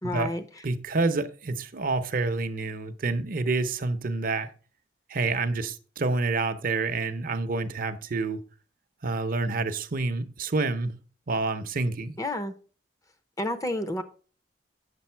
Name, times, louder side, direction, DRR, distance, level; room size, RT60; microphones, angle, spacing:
voice 1, 0.0-0.4 12.2-12.5 13.4-14.0, left 1 dB, 20° left, 0.6 m, -30 dB
voice 2, 0.6-4.5 5.1-8.4 9.0-11.0 11.3-12.2, right 3 dB, 50° right, 0.7 m, -28 dB
8.3 x 6.6 x 4.4 m
head